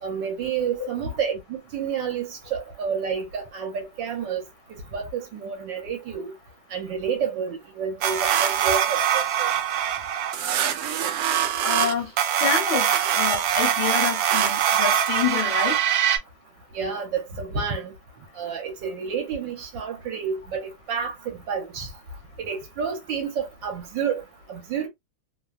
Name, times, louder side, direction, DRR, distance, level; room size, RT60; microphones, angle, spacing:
voice 1, 0.0-4.4 4.9-6.3 6.7-9.5 16.7-17.9 18.3-21.9 22.4-24.9, right 6 dB, 70° right, 1.5 m, -30 dB
sound 1, 8.0-16.2, right 9 dB, 90° right, 0.8 m, -23 dB
voice 2, 11.6-12.1 12.4-15.8, left 7 dB, 65° left, 1.3 m, -27 dB
3.4 x 2.2 x 2.3 m
omnidirectional pair, 2.2 m